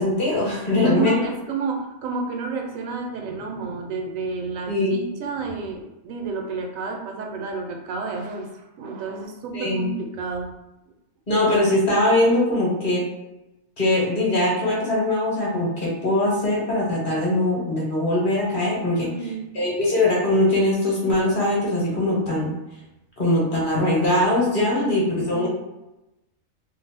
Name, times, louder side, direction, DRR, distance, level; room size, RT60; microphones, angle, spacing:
voice 1, 0.0-1.2 4.7-5.0 9.5-9.9 11.3-13.0 13.8-19.1 19.5-22.5 23.2-25.5, left 1 dB, 45° left, -5 dB, 1.0 m, -21 dB
voice 2, 0.7-10.5 19.0-19.5 24.7-25.5, right 4 dB, 90° right, 2 dB, 1.0 m, -30 dB
2.6 x 2.0 x 4.0 m, 0.95 s
omnidirectional pair, 1.4 m